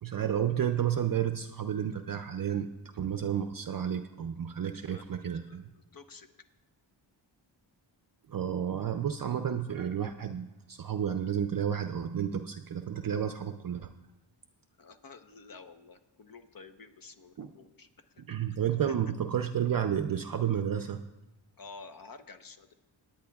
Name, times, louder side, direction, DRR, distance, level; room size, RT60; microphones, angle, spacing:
voice 1, 0.0-5.7 8.3-13.9 17.4-17.5 18.2-21.0, right 9 dB, 50° right, 8 dB, 0.5 m, -31 dB
voice 2, 5.5-6.3 14.8-17.9 18.2-18.3 18.9-19.0 21.6-22.7, left 4 dB, 50° left, 9 dB, 0.9 m, -50 dB
18.5 x 10.0 x 2.3 m, 1.1 s
cardioid pair, 70°, 46 cm